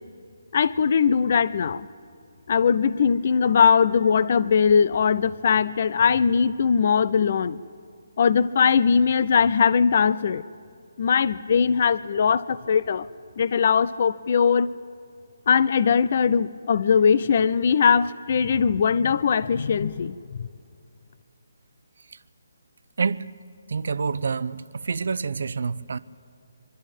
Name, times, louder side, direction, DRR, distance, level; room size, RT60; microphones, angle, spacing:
voice 1, 0.5-1.9 2.5-7.6 8.2-10.4 11.0-13.1 13.4-14.7 15.5-20.5, left 6 dB, 50° left, 0.5 m, -20 dB
voice 2, 23.0-23.3 23.7-26.0, right 5 dB, 65° right, 0.7 m, -27 dB
23.5 x 12.5 x 9.0 m
hypercardioid pair, 150°, 0 cm